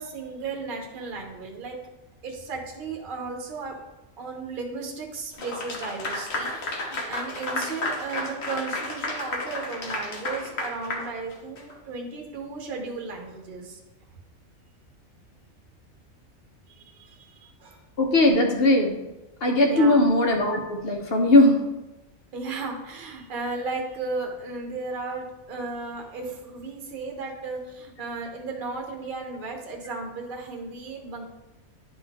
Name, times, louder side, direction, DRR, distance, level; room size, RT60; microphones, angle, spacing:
voice 1, 0.0-1.8 2.2-3.7 4.2-13.8 16.7-17.8 19.6-20.0 22.3-31.3, right 3 dB, 45° right, 1 dB, 1.1 m, -35 dB
Clapping / Applause, 5.4-11.7, left 2 dB, 75° left, 1.5 m, -32 dB
voice 2, 18.0-19.0 19.4-21.6, left 1 dB, 50° left, 2 dB, 1.2 m, -19 dB
11.0 x 3.8 x 3.5 m, 1.0 s
omnidirectional pair, 1.4 m